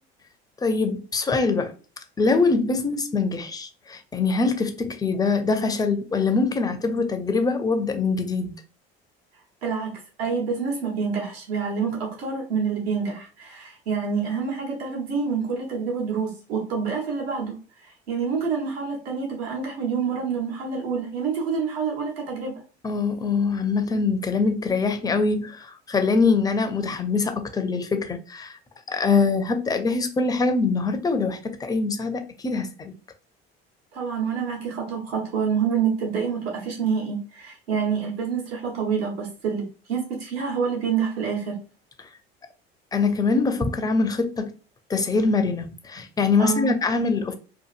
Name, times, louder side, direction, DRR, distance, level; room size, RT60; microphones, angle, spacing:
voice 1, 0.6-1.7 2.2-8.5 22.8-28.6 28.9-32.9 42.0-42.1 42.9-44.5 44.9-47.4, left 4 dB, 15° left, 0.4 m, -23 dB
voice 2, 9.6-22.6 33.9-41.6 46.4-46.7, right 6 dB, 80° right, 1.1 m, -27 dB
2.7 x 2.5 x 2.5 m
hypercardioid pair, 70°, 30 cm